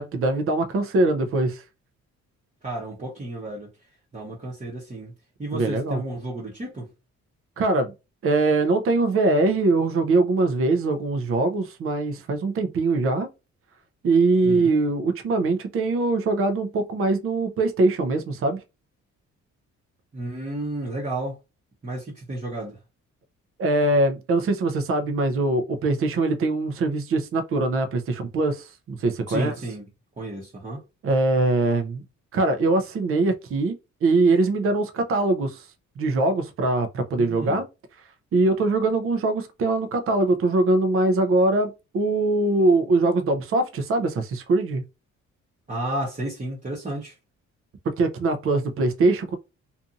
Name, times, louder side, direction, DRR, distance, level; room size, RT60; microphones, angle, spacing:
voice 1, 0.0-1.6 5.5-6.0 7.6-7.9 8.2-13.3 14.0-18.6 23.6-29.5 31.0-32.0 32.3-35.7 36.0-37.6 38.3-44.8 47.8-49.4, right 2 dB, 45° right, 0.6 m, -22 dB
voice 2, 2.6-3.7 4.1-5.1 5.4-6.9 14.4-14.8 20.1-21.4 21.8-22.8 29.3-29.9 30.2-30.8 37.1-37.6 45.7-47.2, right 1 dB, 25° right, 0.9 m, -32 dB
2.7 x 2.5 x 2.5 m
cardioid pair, 90°, 30 cm